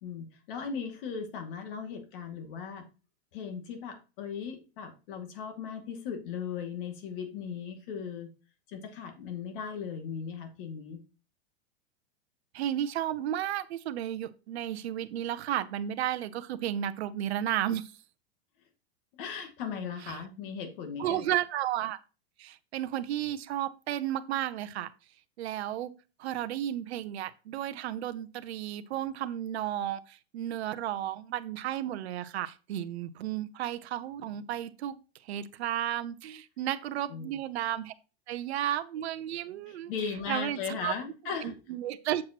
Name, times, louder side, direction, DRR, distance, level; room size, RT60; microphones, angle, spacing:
voice 1, 0.0-2.8 3.3-8.3 8.7-11.0 19.1-21.3 37.1-37.3 39.7-41.5, left 6 dB, 55° left, 2.2 m, -38 dB
voice 2, 12.5-17.9 21.0-22.0 22.4-24.9 25.4-25.9 26.2-35.0 35.2-37.9 38.3-39.9 40.3-40.9 41.4-42.2, right 11 dB, 75° right, 0.8 m, -33 dB
7.5 x 7.4 x 2.9 m
supercardioid pair, 140°, 32 cm